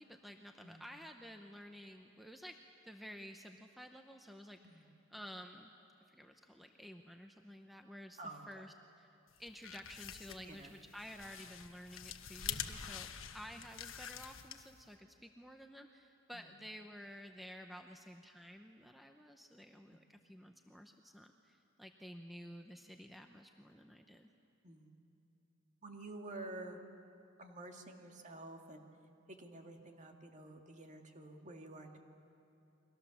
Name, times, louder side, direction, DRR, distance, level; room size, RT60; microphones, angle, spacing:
voice 1, 0.0-4.9 5.1-5.7 6.1-8.2 8.5-9.1 9.4-13.1 13.3-24.3, equal, ahead, 4 dB, 0.8 m, -52 dB
voice 2, 8.2-8.6 10.3-10.7 12.6-12.8 16.3-16.5 19.9-20.0 24.6-24.9 25.8-26.8 27.4-28.9 29.4-32.0, right 2 dB, 40° right, 3 dB, 2.1 m, -50 dB
sound 1, 9.4-14.9, left 9 dB, 70° left, 1.2 m, -46 dB
30.0 x 23.5 x 7.2 m, 2.8 s
head